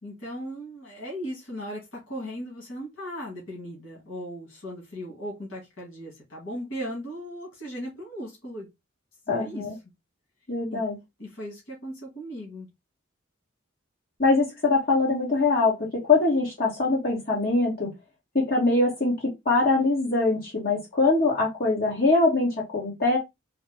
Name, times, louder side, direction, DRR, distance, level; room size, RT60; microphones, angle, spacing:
voice 1, 0.0-8.7 9.3-9.7 10.7-10.8 11.2-12.7, equal, 85° left, 1.9 m, -37 dB
voice 2, 9.3-9.7 10.5-10.9 14.2-17.9 18.3-19.2 19.4-23.2, left 3 dB, 50° left, 1.4 m, -23 dB
4.5 x 2.2 x 3.4 m
head